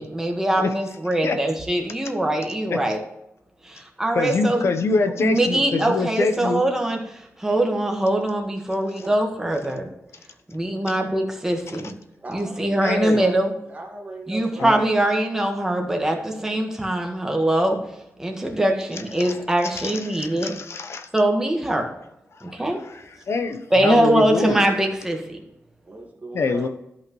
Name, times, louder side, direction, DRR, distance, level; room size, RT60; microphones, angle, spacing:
voice 1, 0.0-3.0 4.0-4.7 5.2-7.0 7.4-9.9 10.5-11.9 12.3-13.5 14.3-17.8 18.2-20.5 21.1-21.9 22.6-22.8 23.7-25.4, right 1 dB, 10° right, 2 dB, 1.5 m, -22 dB
voice 2, 4.1-6.6 12.8-13.3 14.6-14.8 19.2-19.4 19.8-21.1 22.3-24.6 26.3-26.7, left 4 dB, 60° left, 8 dB, 0.8 m, -25 dB
voice 3, 12.2-13.4 13.7-14.7 16.3-16.8 20.3-20.4 25.8-26.7, right 2 dB, 30° right, 1 dB, 1.9 m, -38 dB
13.0 x 5.7 x 3.1 m, 0.84 s
wide cardioid pair, 160°, 5 cm